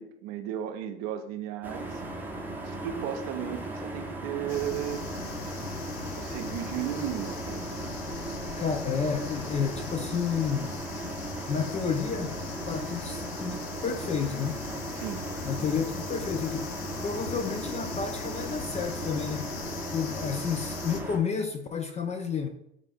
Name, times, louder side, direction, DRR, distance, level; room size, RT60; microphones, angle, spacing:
voice 1, 0.0-2.3 2.6-5.4 6.2-7.9 14.9-15.2, right 10 dB, 55° right, 8 dB, 0.5 m, -35 dB
sound 1, 1.6-21.2, right 2 dB, 5° right, 0.7 m, -37 dB
sound 2, 4.5-21.0, left 9 dB, 65° left, 0.6 m, -40 dB
voice 2, 8.6-10.8 11.5-12.4 12.7-14.6 15.5-16.7 17.0-19.6 19.9-22.5, left 6 dB, 20° left, 5 dB, 0.4 m, -31 dB
4.9 x 2.5 x 3.4 m, 0.77 s
hypercardioid pair, 75°, 32 cm